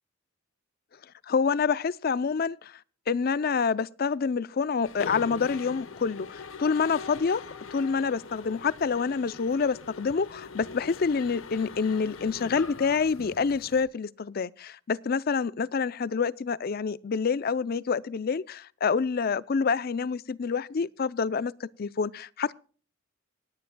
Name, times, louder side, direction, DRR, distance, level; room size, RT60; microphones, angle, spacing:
voice 1, 1.3-2.8 3.1-7.5 7.7-22.6, left 5 dB, 50° left, 0.4 m, -27 dB
Mechanisms, 4.9-13.8, left 4 dB, 85° left, 1.1 m, -42 dB
25.5 x 10.5 x 2.2 m
head